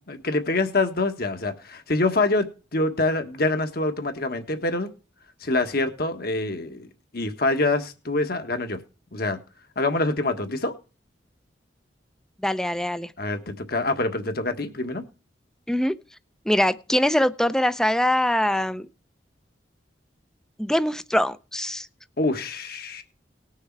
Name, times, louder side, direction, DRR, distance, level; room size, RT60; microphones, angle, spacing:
voice 1, 0.1-4.9 5.4-6.9 7.1-8.8 9.1-9.4 9.8-10.7 13.2-15.0 22.2-23.0, left 2 dB, 55° left, 7 dB, 1.5 m, -25 dB
voice 2, 12.4-13.1 15.7-15.9 16.5-18.9 20.6-21.9, left 1 dB, 5° left, 14 dB, 0.5 m, -23 dB
19.0 x 6.5 x 4.7 m, 0.34 s
head